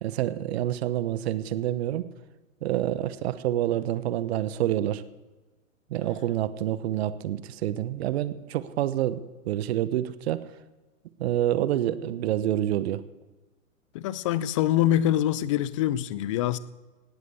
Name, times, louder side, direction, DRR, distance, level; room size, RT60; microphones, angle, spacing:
voice 1, 0.0-2.0 2.6-5.0 5.9-10.5 11.2-13.0, right 12 dB, 50° right, 15 dB, 1.1 m, -27 dB
voice 2, 13.9-16.6, left 12 dB, 25° left, 18 dB, 0.5 m, -24 dB
18.5 x 8.3 x 7.9 m, 1.2 s
hypercardioid pair, 130°, 42 cm